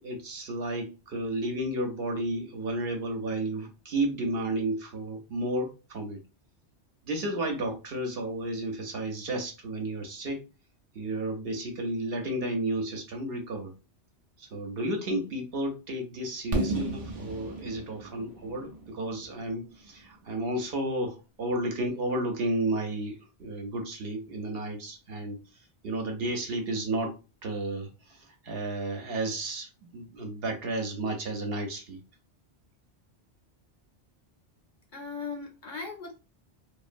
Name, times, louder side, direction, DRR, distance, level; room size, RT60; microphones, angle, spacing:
voice 1, 0.0-6.2 7.1-10.4 10.9-13.7 14.4-25.4 25.8-27.1 27.4-32.0, right 1 dB, 60° right, 0.9 m, -32 dB
Fireworks, 16.5-20.4, right 2 dB, 45° right, 0.5 m, -34 dB
voice 2, 34.9-36.1, left 4 dB, 55° left, 0.6 m, -38 dB
2.9 x 2.3 x 2.5 m
omnidirectional pair, 1.2 m